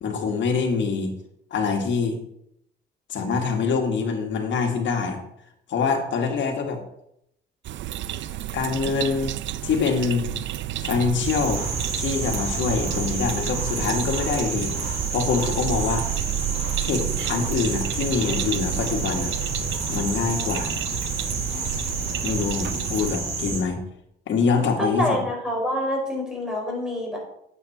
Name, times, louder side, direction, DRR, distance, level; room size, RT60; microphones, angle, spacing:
voice 1, 0.0-1.1 1.5-2.2 3.1-5.2 5.7-6.8 8.5-9.3 9.6-10.3 10.8-11.6 12.0-16.1 16.8-19.3 19.9-20.8 22.2-23.8 24.3-25.2, left 5 dB, 70° left, 3 dB, 2.0 m, -25 dB
sound 1, 7.6-23.2, right 14 dB, 70° right, 0.5 m, -31 dB
sound 2, 11.2-23.6, right 3 dB, 50° right, 3.1 m, -30 dB
voice 2, 24.8-27.2, equal, 5° right, -1 dB, 4.4 m, -26 dB
8.9 x 8.1 x 4.4 m, 0.76 s
cardioid pair, 90°, 20 cm